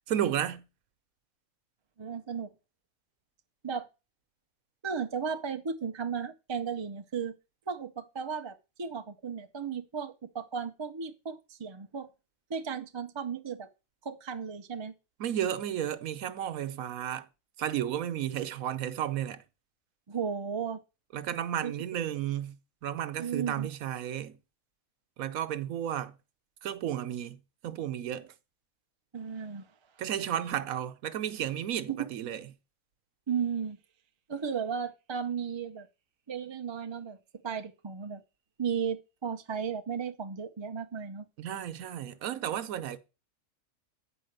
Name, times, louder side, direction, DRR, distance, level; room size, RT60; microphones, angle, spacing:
voice 1, 0.1-0.7 15.2-17.3 17.6-19.4 21.1-22.6 22.8-24.4 25.2-26.1 26.6-28.3 30.0-32.4 41.4-43.0, right 10 dB, 90° right, 1.2 m, -33 dB
voice 2, 2.0-2.5 3.6-3.9 4.8-7.3 7.7-12.1 12.5-13.7 14.0-14.9 20.1-20.8 21.6-21.7 23.2-23.7 29.1-29.7 31.9-32.1 33.3-33.8 34.3-35.9 36.3-37.2 37.4-38.2 38.6-41.2, right 6 dB, 35° right, 0.5 m, -35 dB
8.9 x 4.9 x 6.5 m
omnidirectional pair, 1.4 m